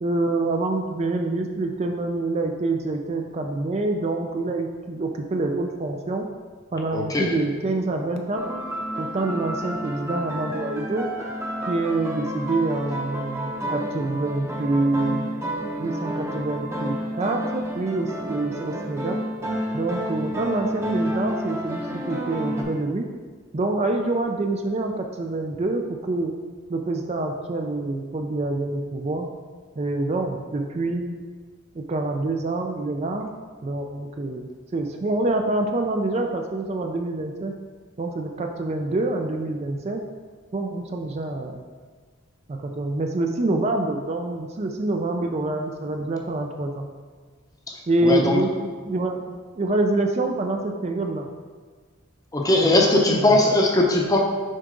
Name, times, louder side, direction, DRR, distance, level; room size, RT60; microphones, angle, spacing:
voice 1, 0.0-6.3 6.7-8.7 9.0-11.1 11.7-15.3 15.8-19.2 19.7-23.1 23.5-26.4 26.7-29.3 29.8-31.2 31.8-33.4 33.6-37.5 38.0-40.1 40.5-41.6 42.5-46.9 47.9-51.3 52.5-53.4, right 2 dB, 30° right, 3 dB, 0.4 m, -26 dB
voice 2, 6.9-7.4 47.7-48.4 52.3-54.2, left 2 dB, 20° left, 1 dB, 0.7 m, -20 dB
sound 1, 8.3-22.6, equal, 15° right, 0.7 m, -30 dB
6.5 x 4.7 x 3.8 m, 1.5 s
head